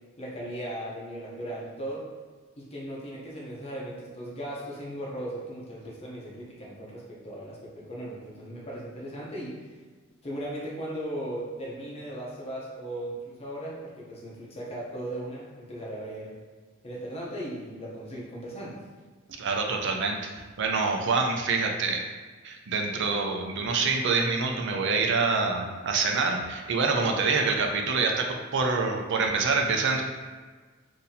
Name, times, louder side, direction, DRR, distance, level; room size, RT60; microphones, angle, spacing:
voice 1, 0.2-2.1 2.6-9.6 10.2-16.3 16.8-18.8, right 1 dB, 30° left, -5 dB, 0.7 m, -37 dB
voice 2, 19.4-20.2 20.6-22.1 22.4-30.0, right 4 dB, 60° right, 2 dB, 0.5 m, -26 dB
2.7 x 2.7 x 4.0 m, 1.4 s
head